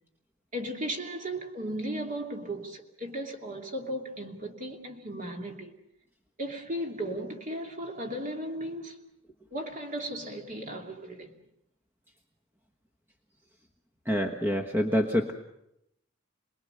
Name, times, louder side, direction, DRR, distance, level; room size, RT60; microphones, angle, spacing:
voice 1, 0.5-5.7 6.4-9.0 9.5-11.4, right 1 dB, 40° right, 2.7 m, -36 dB
voice 2, 14.1-15.3, equal, 10° right, 1.3 m, -26 dB
27.5 x 20.5 x 6.8 m
head